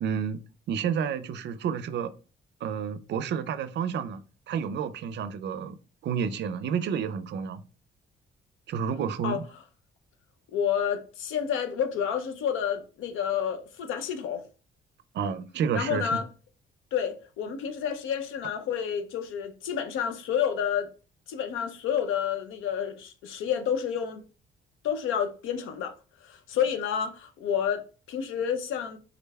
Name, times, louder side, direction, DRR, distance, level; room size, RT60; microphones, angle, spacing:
voice 1, 0.0-2.1 2.6-4.2 4.5-5.8 6.0-7.6 8.7-9.4 15.1-16.2, right 7 dB, 60° right, 0.4 m, -30 dB
voice 2, 10.5-14.4 15.7-16.2 16.9-20.9 21.3-24.2 24.8-25.9 26.2-29.0, left 8 dB, 85° left, 0.6 m, -29 dB
3.7 x 3.3 x 2.2 m
cardioid pair, 90°, 20 cm